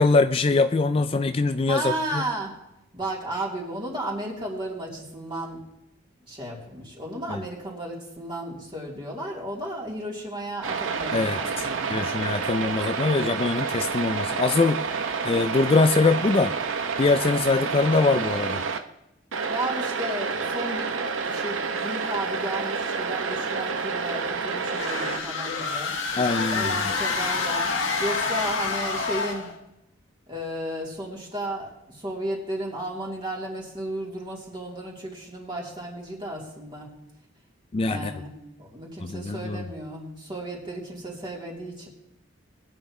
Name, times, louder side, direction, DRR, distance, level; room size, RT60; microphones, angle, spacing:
voice 1, 0.0-2.2 7.3-7.4 11.1-11.4 11.9-14.8 15.2-16.6 17.0-18.6 26.2-26.8 37.7-38.1 39.0-39.6, left 3 dB, 30° left, 10 dB, 0.3 m, -23 dB
voice 2, 1.7-2.5 2.9-5.6 6.3-12.0 19.5-20.9 21.2-26.0 26.5-27.7 28.0-29.5 30.3-36.9 37.9-41.9, right 1 dB, 25° right, -3 dB, 3.1 m, -34 dB
sound 1, 10.6-18.8 19.3-25.2, right 5 dB, 90° right, 0.9 m, -29 dB
sound 2, 24.6-29.6, left 4 dB, 80° left, 1.7 m, -28 dB
21.0 x 9.3 x 3.2 m, 0.86 s
head